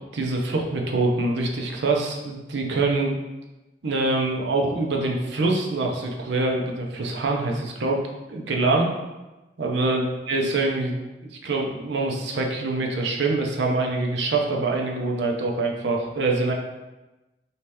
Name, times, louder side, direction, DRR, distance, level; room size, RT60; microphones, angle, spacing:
voice 1, 0.1-3.2 3.8-8.0 8.3-8.9 9.6-10.9 11.2-16.5, right 2 dB, 75° right, 0 dB, 0.5 m, -24 dB
3.1 x 2.8 x 3.4 m, 1.1 s
head